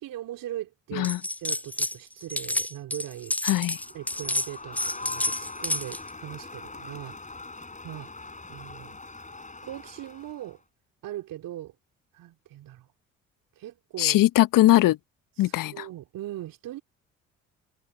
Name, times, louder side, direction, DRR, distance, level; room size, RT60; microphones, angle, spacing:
voice 1, 0.0-1.1 1.4-3.4 3.9-7.2 7.8-8.1 8.5-9.0 9.6-10.6 11.0-11.7 12.1-12.9 13.6-14.2 15.4-16.8, right 13 dB, 60° right, 3.1 m, -39 dB
sound 1, 1.0-2.0 2.2-6.1, left 1 dB, 5° left, 0.6 m, -30 dB
voice 2, 3.4-3.8 14.0-15.0 15.4-15.8, left 15 dB, 55° left, 1.3 m, -20 dB
Crowd, 3.7-10.6, left 3 dB, 20° left, 5.2 m, -42 dB
figure-of-eight pair, 45°, 38 cm